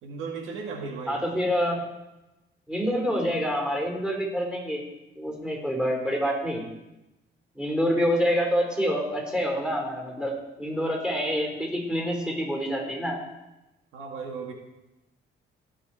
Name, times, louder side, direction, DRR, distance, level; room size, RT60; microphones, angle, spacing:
voice 1, 0.0-1.2 1.7-1.8 13.9-14.5, right 5 dB, 85° right, 2 dB, 1.8 m, -36 dB
voice 2, 1.1-1.8 2.7-4.8 5.2-6.6 7.6-10.3 10.6-13.2, equal, 5° right, 0 dB, 3.8 m, -27 dB
17.0 x 6.2 x 4.3 m, 0.98 s
cardioid pair, 90°, 20 cm